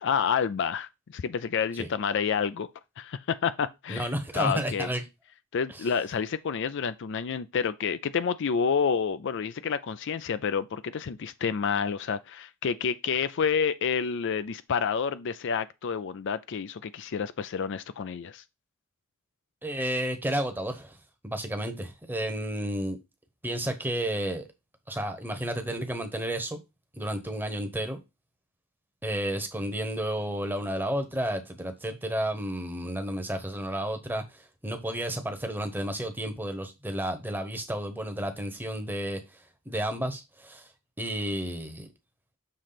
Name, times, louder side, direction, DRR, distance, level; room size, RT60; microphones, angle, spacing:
voice 1, 0.0-2.7 3.0-4.1 4.3-4.9 5.5-18.4, left 6 dB, 55° left, 0.4 m, -29 dB
voice 2, 3.9-5.0 5.7-5.9 19.6-21.0 21.2-23.0 23.4-24.5 24.9-26.6 26.9-28.0 29.0-39.2 39.7-40.7 41.0-41.9, right 1 dB, 10° right, 1.0 m, -31 dB
6.8 x 3.2 x 5.7 m
head